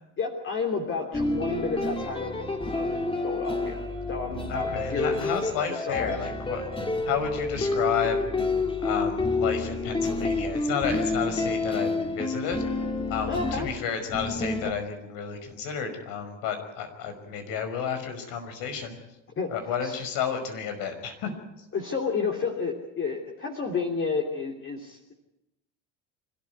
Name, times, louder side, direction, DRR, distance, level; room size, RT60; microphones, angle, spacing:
voice 1, 0.2-2.4 2.7-2.9 3.2-5.2 5.7-6.1 13.3-13.7 19.4-19.5 19.8-20.0 21.7-25.1, left 5 dB, 35° left, 2 dB, 3.1 m, -31 dB
sound 1, 1.1-14.7, left 2 dB, 15° left, 2.6 m, -29 dB
voice 2, 4.5-6.6 7.1-8.2 8.8-12.6 13.1-19.0 19.5-21.3, left 7 dB, 65° left, 7 dB, 5.5 m, -31 dB
26.5 x 14.0 x 9.6 m, 0.92 s
supercardioid pair, 105°, 36 cm